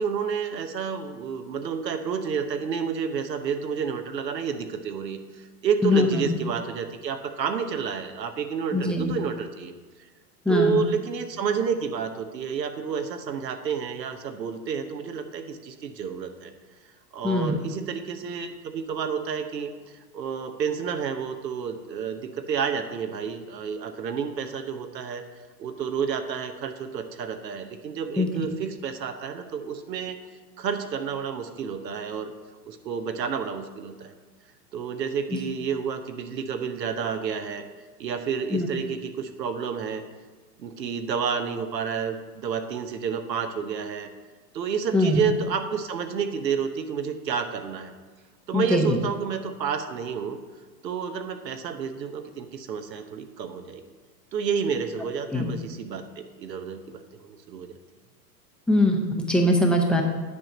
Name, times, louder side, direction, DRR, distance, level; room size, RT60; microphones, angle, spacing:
voice 1, 0.0-9.7 10.5-16.5 17.1-19.7 20.1-25.2 25.6-30.2 30.6-32.3 32.7-34.1 34.7-37.6 38.0-40.0 40.6-44.1 44.5-47.9 48.5-50.4 50.8-53.8 54.3-57.7, right 6 dB, 85° right, 8 dB, 1.0 m, -30 dB
voice 2, 5.8-6.2 8.7-9.1 10.5-10.8 17.2-17.6 28.2-28.3 38.5-38.7 44.9-45.2 48.5-49.0 55.3-55.5 58.7-60.0, left 1 dB, ahead, 2 dB, 0.5 m, -22 dB
9.9 x 4.5 x 6.1 m, 1.4 s
hypercardioid pair, 120°, 49 cm